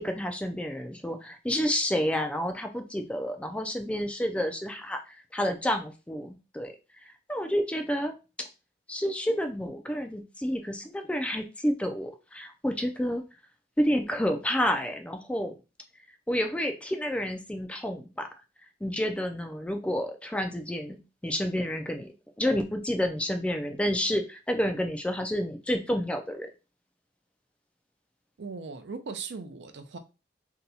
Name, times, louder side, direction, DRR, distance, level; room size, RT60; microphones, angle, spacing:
voice 1, 0.0-6.7 7.3-8.5 8.9-13.2 13.8-15.5 16.3-18.3 18.8-22.1 22.4-26.5, equal, 5° left, 0.3 m, -29 dB
voice 2, 28.4-30.0, right 4 dB, 75° right, 0.5 m, -38 dB
2.7 x 2.2 x 4.0 m
head